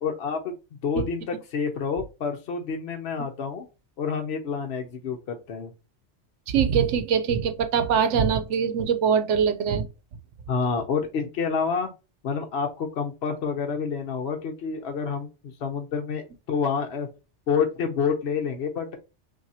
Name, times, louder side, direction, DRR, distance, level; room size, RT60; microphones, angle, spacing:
voice 1, 0.0-0.5 0.8-3.7 4.0-5.7 10.5-11.9 12.2-17.1 17.5-19.0, left 6 dB, 65° left, 0.9 m, -28 dB
voice 2, 6.5-9.9, right 7 dB, 85° right, 1.0 m, -23 dB
5.7 x 2.7 x 2.8 m
omnidirectional pair, 1.2 m